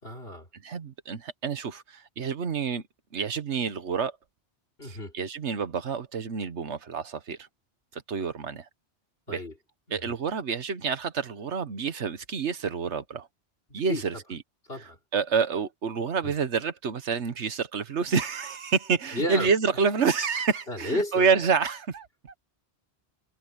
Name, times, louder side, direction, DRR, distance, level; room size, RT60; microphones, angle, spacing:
voice 1, 0.0-0.5 4.8-5.1 9.3-9.5 9.9-10.1 13.9-14.0 14.7-15.0 16.2-16.3 19.1-19.5 20.7-21.2, left 1 dB, 55° left, 5.1 m, -32 dB
voice 2, 0.5-2.8 3.1-4.1 4.8-7.5 7.9-8.6 9.3-9.4 9.9-13.3 13.7-14.4 15.1-22.3, right 5 dB, 75° right, 1.5 m, -28 dB
omnidirectional pair, 1.2 m